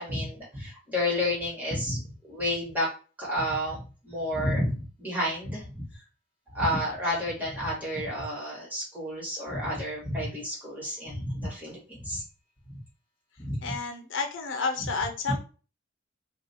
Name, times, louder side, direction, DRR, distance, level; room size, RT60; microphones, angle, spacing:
voice 1, 0.0-2.9 3.2-5.8 6.5-12.2 13.4-13.8 14.8-14.9, left 1 dB, 10° right, -5 dB, 1.4 m, -30 dB
voice 2, 13.6-15.4, left 4 dB, 70° left, 4 dB, 0.6 m, -30 dB
2.7 x 2.3 x 4.1 m, 0.36 s
head